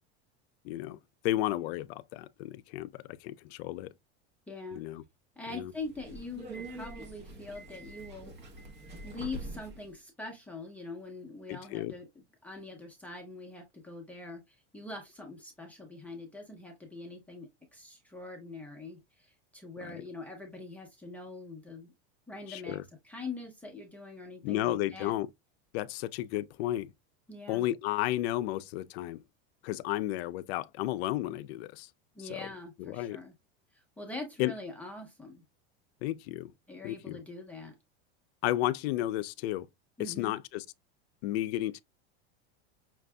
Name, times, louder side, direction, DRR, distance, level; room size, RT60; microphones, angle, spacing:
voice 1, 0.6-1.0 1.2-3.9 4.7-5.0 5.5-5.7 11.5-11.9 22.5-22.8 24.4-25.3 25.7-26.9 27.5-29.2 29.6-31.9 32.3-32.5 32.8-33.2 34.4-34.5 36.0-36.5 36.8-37.2 38.4-39.7 40.0-40.6 41.2-41.8, left 15 dB, 70° left, 0.5 m, -33 dB
voice 2, 4.5-4.8 5.4-8.3 9.0-21.9 22.3-22.8 23.0-25.1 27.3-27.7 32.1-33.3 33.7-35.4 36.7-37.8 40.0-40.4, left 3 dB, 5° left, 0.7 m, -43 dB
Subway metro underground, 5.7-9.9, right 2 dB, 30° right, 0.9 m, -45 dB
5.8 x 2.6 x 2.2 m
supercardioid pair, 155°, 33 cm